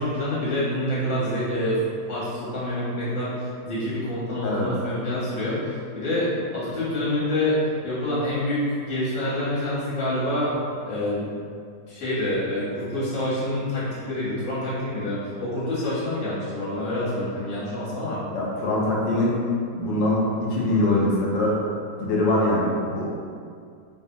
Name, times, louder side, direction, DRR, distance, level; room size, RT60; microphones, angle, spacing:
voice 1, 0.0-1.8 2.1-10.5 10.8-11.3 11.9-18.2, left 1 dB, 55° left, -10 dB, 1.3 m, -27 dB
voice 2, 18.3-19.4 19.7-21.5 21.9-23.1, left 1 dB, 90° left, -5 dB, 1.3 m, -23 dB
3.2 x 2.0 x 2.6 m, 2.3 s
omnidirectional pair, 1.9 m